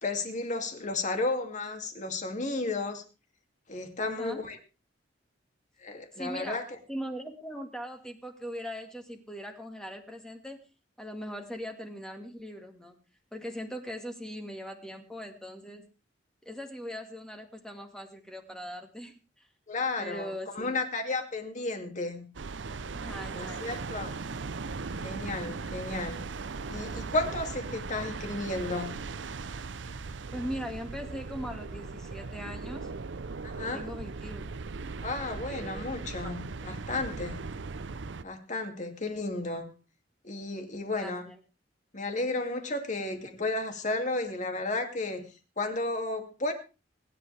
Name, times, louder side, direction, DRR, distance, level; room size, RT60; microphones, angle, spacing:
voice 1, 0.0-3.0 3.7-4.6 5.8-6.6 19.7-22.3 23.3-24.1 25.0-26.2 26.7-28.9 33.4-33.9 35.0-37.4 38.2-39.7 40.2-41.2 41.9-45.3 45.6-46.5, left 2 dB, 40° left, 5 dB, 2.6 m, -33 dB
voice 2, 4.0-4.4 6.1-6.6 6.9-10.6 11.0-13.0 13.3-15.8 16.4-19.5 20.0-20.8 22.9-23.8 30.3-32.9 33.6-34.5 35.3-36.3 40.9-41.4, equal, 5° left, 4 dB, 2.0 m, -40 dB
sound 1, 22.3-38.2, right 4 dB, 70° right, 0.7 m, -38 dB
24.5 x 11.0 x 3.4 m, 0.32 s
head